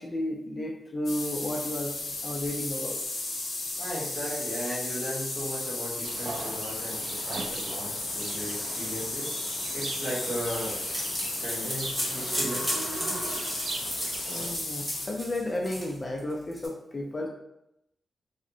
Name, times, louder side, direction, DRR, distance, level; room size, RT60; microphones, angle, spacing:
voice 1, 0.0-1.9 2.2-3.0 14.3-17.3, left 1 dB, 25° left, 1 dB, 0.4 m, -33 dB
sound 1, 1.0-15.1, left 2 dB, 85° left, 0.7 m, -34 dB
voice 2, 3.8-9.3 9.7-10.9 11.4-12.8, equal, 50° right, -6 dB, 1.4 m, -36 dB
Livestock farm animals working animals, 6.0-14.6, right 3 dB, 70° right, 0.3 m, -39 dB
sound 2, 10.2-16.7, equal, 5° right, 0.9 m, -34 dB
3.4 x 2.0 x 2.6 m, 0.80 s
wide cardioid pair, 145°, 0 cm